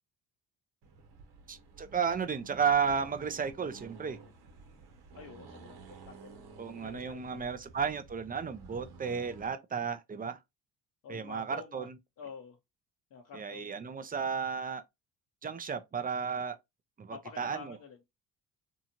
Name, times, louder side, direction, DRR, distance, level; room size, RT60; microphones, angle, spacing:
Accelerating revving vroom, 0.8-9.5, right 4 dB, 70° right, 0.9 m, -52 dB
voice 1, 1.5-4.2 6.6-10.4 11.1-11.9 13.3-14.8 15.4-16.6 17.0-17.8, right 6 dB, 20° right, 0.4 m, -33 dB
voice 2, 5.1-7.5 11.0-11.9 12.2-12.6 13.1-13.8 17.1-18.0, left 5 dB, 50° left, 0.7 m, -48 dB
2.8 x 2.4 x 2.8 m
supercardioid pair, 60°, 43 cm